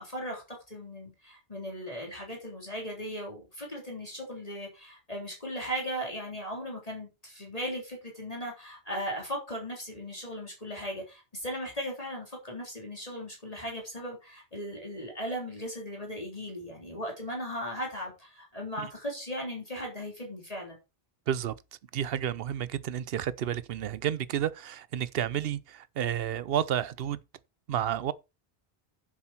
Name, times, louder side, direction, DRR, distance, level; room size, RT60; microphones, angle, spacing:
voice 1, 0.0-20.8, equal, 35° left, 3.8 m, -37 dB
voice 2, 21.9-27.2 27.7-28.1, right 10 dB, 70° right, 0.8 m, -31 dB
10.0 x 7.5 x 4.4 m
omnidirectional pair, 1.1 m